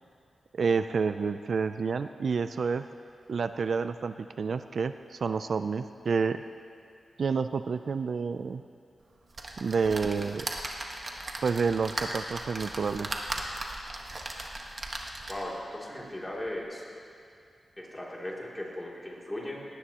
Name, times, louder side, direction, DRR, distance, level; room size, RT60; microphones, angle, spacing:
voice 1, 0.5-2.8 3.3-6.4 7.2-8.6 9.6-10.5 11.4-13.1, right 5 dB, 65° right, 10 dB, 0.3 m, -29 dB
sound 1, 9.3-15.6 16.1-16.2 16.5-16.6, right 2 dB, 40° right, 1.3 m, -37 dB
voice 2, 15.3-16.8 17.8-19.6, left 1 dB, 15° left, -4 dB, 2.8 m, -37 dB
19.0 x 17.0 x 2.9 m, 2.4 s
wide cardioid pair, 125°, 0 cm